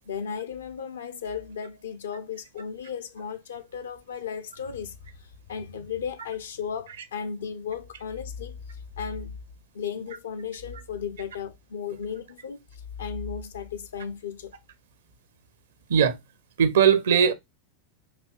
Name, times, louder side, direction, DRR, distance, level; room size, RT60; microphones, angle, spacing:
voice 1, 0.1-8.6 9.0-9.4 9.7-14.5, left 7 dB, 65° left, 0.6 m, -35 dB
voice 2, 16.6-17.3, right 7 dB, 60° right, 0.6 m, -19 dB
4.2 x 2.8 x 2.2 m
figure-of-eight pair, 90°, 0 cm